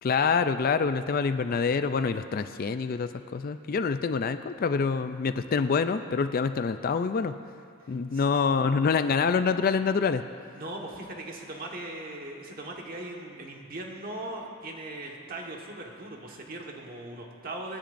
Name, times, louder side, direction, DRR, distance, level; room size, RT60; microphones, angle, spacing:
voice 1, 0.0-7.4 7.9-10.2, left 5 dB, 45° left, 10 dB, 0.4 m, -26 dB
voice 2, 7.8-8.2 10.5-17.8, right 2 dB, 45° right, 0 dB, 1.4 m, -39 dB
26.0 x 10.0 x 2.6 m, 2.4 s
head